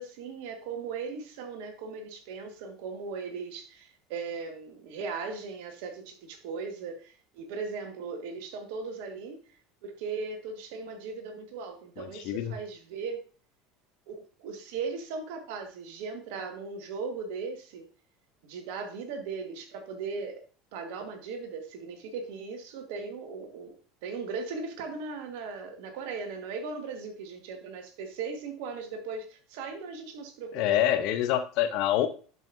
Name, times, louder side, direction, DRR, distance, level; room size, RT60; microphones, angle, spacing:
voice 1, 0.0-9.4 9.8-13.2 14.1-17.9 18.4-20.4 20.7-23.8 24.0-30.6, right 4 dB, 65° right, 6 dB, 1.4 m, -38 dB
voice 2, 12.0-12.6 30.5-32.1, left 11 dB, 60° left, 10 dB, 0.7 m, -26 dB
10.5 x 5.1 x 2.6 m, 0.39 s
figure-of-eight pair, 70°, 0 cm